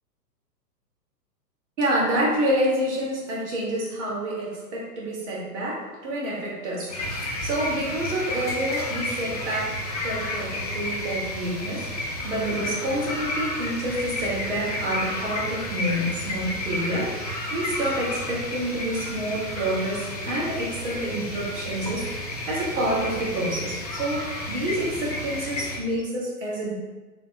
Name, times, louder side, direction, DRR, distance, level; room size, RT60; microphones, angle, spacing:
voice 1, 1.8-26.7, right 1 dB, 45° right, -4 dB, 1.4 m, -28 dB
sound 1, 6.9-25.8, left 1 dB, 25° left, 0.3 m, -31 dB
3.8 x 3.0 x 2.7 m, 1.2 s
figure-of-eight pair, 115°, 48 cm